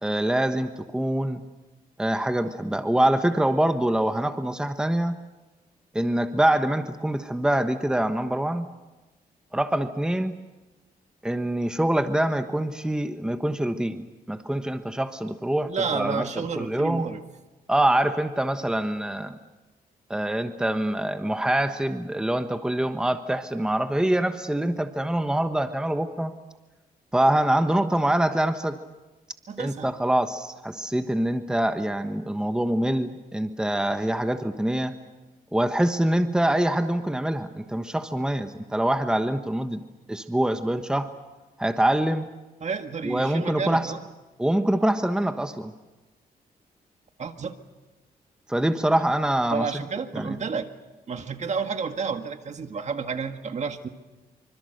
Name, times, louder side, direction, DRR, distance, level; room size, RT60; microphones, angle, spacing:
voice 1, 0.0-1.4 2.0-5.2 5.9-8.7 9.5-10.4 11.2-16.3 16.6-17.1 17.7-19.4 20.1-26.3 27.1-28.8 29.6-34.9 35.5-39.8 40.1-41.1 41.6-42.2 43.0-43.9 44.4-45.7 48.5-49.7 50.1-50.4, right 1 dB, 5° right, 8 dB, 1.2 m, -25 dB
voice 2, 15.7-17.2 29.5-29.9 42.6-44.0 47.2-47.5 49.5-50.7 51.1-53.9, right 5 dB, 45° right, 7 dB, 1.8 m, -30 dB
26.0 x 25.5 x 6.7 m, 1.1 s
cardioid pair, 110°, 16 cm